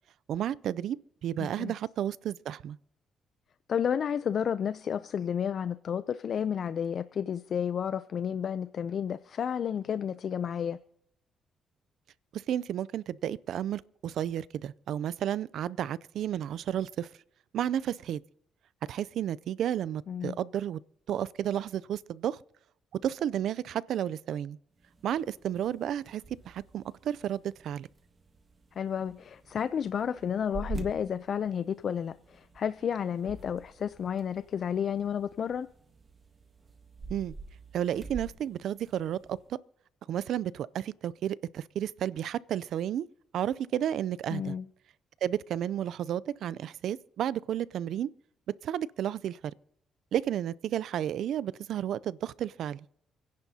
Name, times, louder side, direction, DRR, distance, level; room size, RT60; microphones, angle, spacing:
voice 1, 0.3-1.0 1.2-2.8 12.3-17.1 17.5-18.2 18.9-20.8 21.1-22.4 23.0-24.6 25.0-27.9 37.1-37.3 37.7-39.4 40.1-43.1 43.3-44.5 45.2-48.1 48.6-49.4 50.1-52.9, right 10 dB, 75° right, 0.4 m, -32 dB
voice 2, 1.4-1.7 3.7-10.8 20.1-20.4 28.8-35.7 44.3-44.7, left 8 dB, 55° left, 0.4 m, -31 dB
sound 1, 24.7-39.5, right 3 dB, 35° right, 1.8 m, -47 dB
28.5 x 10.5 x 2.8 m
cardioid pair, 90°, 0 cm